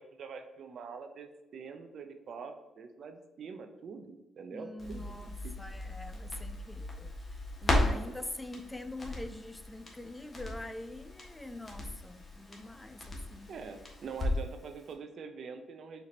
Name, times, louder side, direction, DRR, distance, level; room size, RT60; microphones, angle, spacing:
voice 1, 0.0-5.0 5.4-5.5 13.5-16.0, right 5 dB, 65° right, 7 dB, 0.5 m, -44 dB
voice 2, 4.5-13.5, left 1 dB, 15° left, 11 dB, 0.3 m, -44 dB
Crackle, 4.8-14.6 14.9-15.0, left 1 dB, 35° left, 1.2 m, -36 dB
4.5 x 2.8 x 3.8 m, 1.0 s
supercardioid pair, 60°, 0 cm